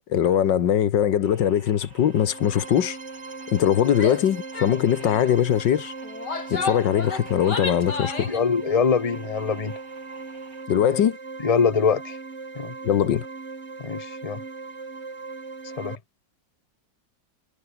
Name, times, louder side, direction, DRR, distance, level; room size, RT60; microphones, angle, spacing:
voice 1, 0.1-3.0 3.5-5.9 6.5-8.3 10.7-11.2 12.8-13.3, left 9 dB, 80° left, 1.9 m, -21 dB
sound 1, 1.2-10.7, right 2 dB, 75° right, 7.2 m, -52 dB
sound 2, 1.9-16.0, right 4 dB, 40° right, 2.6 m, -39 dB
Female speech woman speaking / Yell, 3.9-4.2 4.5-4.7 5.0-5.3 6.0-8.4, left 4 dB, 65° left, 4.1 m, -32 dB
voice 2, 8.3-9.7 11.4-12.2 12.5-12.7 13.8-14.4 15.8-16.0, left 5 dB, 20° left, 1.2 m, -23 dB
omnidirectional pair, 1.9 m